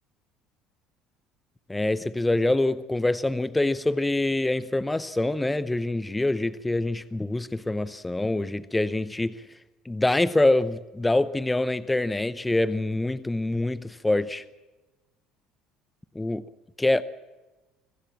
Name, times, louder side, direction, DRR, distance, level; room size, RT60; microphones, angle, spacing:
voice 1, 1.7-9.4 9.9-14.4 16.1-16.4 16.8-17.0, left 2 dB, 10° left, 0.8 m, -25 dB
24.0 x 15.5 x 7.5 m
supercardioid pair, 95°, 0 cm